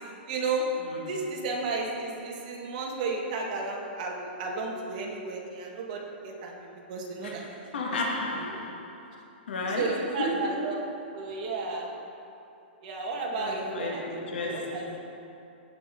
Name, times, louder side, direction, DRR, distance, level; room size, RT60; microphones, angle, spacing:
voice 1, 0.3-0.7 1.1-7.4 8.4-8.6 9.8-11.9 12.8-15.0, right 3 dB, 45° right, 1.7 m, -33 dB
voice 2, 7.2-9.0 9.5-10.7 13.4-15.0, left 2 dB, 80° left, 2.0 m, -33 dB
17.0 x 5.8 x 3.8 m
hypercardioid pair, 155°, 6 cm